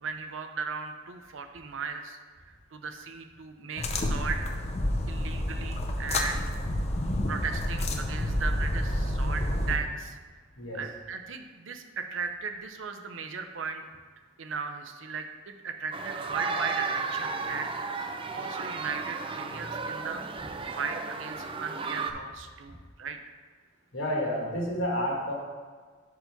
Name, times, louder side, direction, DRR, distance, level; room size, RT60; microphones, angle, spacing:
voice 1, 0.0-2.2 2.5-4.4 5.1-6.5 7.3-10.2 10.7-13.8 14.4-17.7 18.3-20.2 20.7-23.2, right 5 dB, 85° right, 7 dB, 0.6 m, -37 dB
sound 1, 3.8-9.8, left 1 dB, 35° left, 0.6 m, -29 dB
sound 2, 15.9-22.1, right 4 dB, 30° right, 0.4 m, -34 dB
voice 2, 23.9-25.3, equal, 85° left, -3 dB, 1.8 m, -30 dB
5.2 x 4.7 x 5.9 m, 1.5 s
head